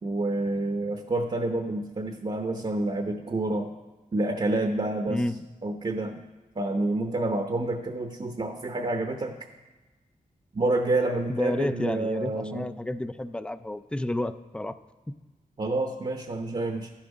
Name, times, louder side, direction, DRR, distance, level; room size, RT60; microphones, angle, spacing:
voice 1, 0.0-3.7 4.1-5.2 5.6-6.2 6.6-9.4 10.5-12.7 15.6-16.9, right 2 dB, 40° right, 5 dB, 0.8 m, -28 dB
voice 2, 11.3-14.8 15.1-15.2, left 1 dB, 5° left, 13 dB, 0.4 m, -30 dB
11.0 x 7.2 x 5.3 m, 1.2 s
wide cardioid pair, 80°, 15 cm